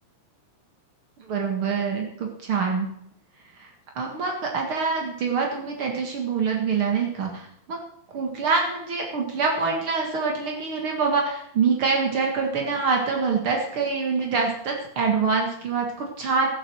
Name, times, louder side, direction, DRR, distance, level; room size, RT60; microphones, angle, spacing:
voice 1, 1.3-2.9 3.6-3.7 3.9-7.8 8.1-16.5, right 5 dB, 70° right, 1 dB, 1.2 m, -25 dB
15.0 x 11.0 x 6.2 m, 0.73 s
omnidirectional pair, 5.5 m